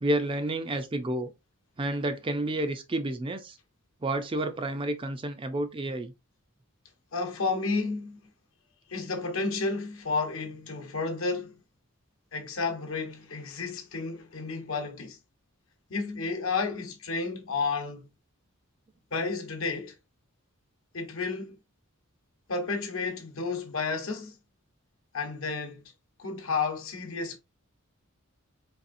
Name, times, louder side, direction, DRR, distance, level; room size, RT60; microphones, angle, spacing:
voice 1, 0.0-1.3 1.8-3.6 4.0-6.1, right 1 dB, 25° right, 0.4 m, -30 dB
voice 2, 7.1-8.2 8.9-11.6 12.3-15.2 15.9-18.1 19.1-19.9 20.9-21.6 22.5-24.4 25.1-25.9 26.2-27.4, left 4 dB, 65° left, 1.0 m, -31 dB
4.1 x 3.2 x 2.5 m
head